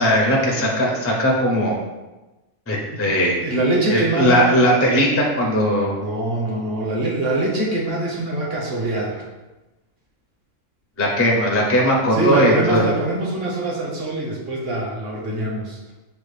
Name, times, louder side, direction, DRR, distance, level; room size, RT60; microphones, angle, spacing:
voice 1, 0.0-1.8 2.7-3.4 3.9-6.0 11.0-12.8, equal, 20° left, -1 dB, 0.4 m, -18 dB
voice 2, 2.9-4.5 6.0-9.2 12.1-15.9, right 2 dB, 50° right, -3 dB, 1.2 m, -23 dB
5.6 x 2.4 x 3.2 m, 1.1 s
omnidirectional pair, 1.4 m